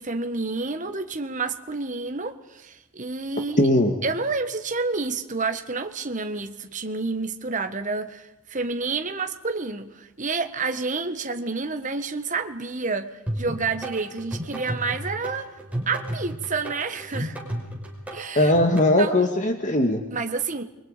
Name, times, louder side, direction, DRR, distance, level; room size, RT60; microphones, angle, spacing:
voice 1, 0.0-3.7 4.0-15.5 15.9-17.4 18.1-18.5 19.0-19.2 20.1-20.6, right 4 dB, 35° right, 7 dB, 1.6 m, -29 dB
voice 2, 3.6-3.9 18.4-20.0, left 1 dB, 35° left, 5 dB, 2.0 m, -19 dB
sound 1, 13.3-18.9, right 1 dB, 5° right, 5.4 m, -33 dB
29.0 x 23.5 x 5.2 m, 0.96 s
head